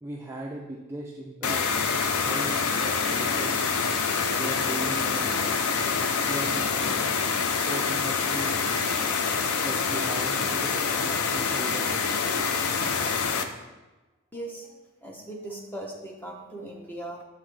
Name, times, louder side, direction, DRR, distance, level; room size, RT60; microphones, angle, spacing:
voice 1, 0.0-1.6 2.2-3.8 4.3-5.6 6.0-7.1 7.4-8.7 9.6-12.2, right 1 dB, 10° right, -1 dB, 0.3 m, -38 dB
sound 1, 1.4-13.4, left 5 dB, 80° left, 0.5 m, -26 dB
voice 2, 14.3-17.2, right 1 dB, 10° left, 0 dB, 0.8 m, -39 dB
6.9 x 5.5 x 3.3 m, 1.1 s
head